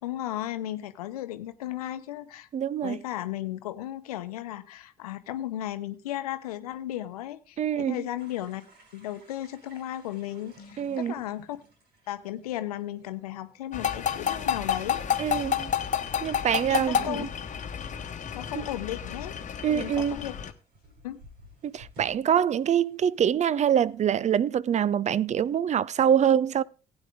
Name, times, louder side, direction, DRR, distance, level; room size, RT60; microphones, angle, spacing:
voice 1, 0.0-2.5 2.8-8.6 8.9-11.6 12.1-15.0 16.7-17.3 18.3-19.3 19.7-20.3 21.0-21.2, left 13 dB, 85° left, 0.8 m, -35 dB
voice 2, 2.5-3.0 7.6-8.0 10.8-11.1 15.2-15.7 16.2-17.3 18.6-18.7 19.6-20.2 21.6-26.6, right 9 dB, 40° right, 0.5 m, -25 dB
sound 1, 8.2-24.3, equal, 65° right, 5.1 m, -57 dB
sound 2, 13.7-20.5, left 8 dB, 40° left, 1.1 m, -30 dB
16.0 x 8.9 x 3.5 m
hypercardioid pair, 55°, 19 cm